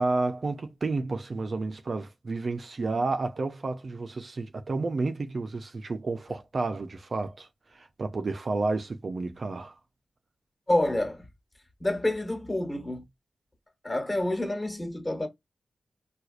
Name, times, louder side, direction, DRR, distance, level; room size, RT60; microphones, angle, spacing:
voice 1, 0.0-9.8, right 3 dB, 50° right, 0.5 m, -31 dB
voice 2, 10.7-11.2 11.8-13.0 13.8-15.3, left 1 dB, 20° left, 1.7 m, -28 dB
4.5 x 2.3 x 2.5 m
wide cardioid pair, 90°, 0 cm